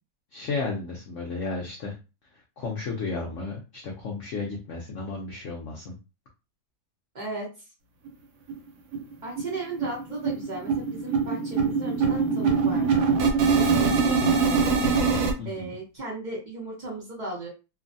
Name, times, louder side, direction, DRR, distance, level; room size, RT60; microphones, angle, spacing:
voice 1, 0.3-2.0 2.6-6.0 15.4-15.8, left 3 dB, 70° left, -1 dB, 0.7 m, -33 dB
voice 2, 7.1-7.5 9.2-13.0 13.5-14.5 15.4-17.5, right 2 dB, 70° right, -4 dB, 0.4 m, -36 dB
sound 1, 8.1-8.2 8.5-8.6 8.9-9.1 9.4-15.3, right 5 dB, 90° right, 1.4 m, -23 dB
3.1 x 2.1 x 2.6 m, 0.30 s
omnidirectional pair, 2.0 m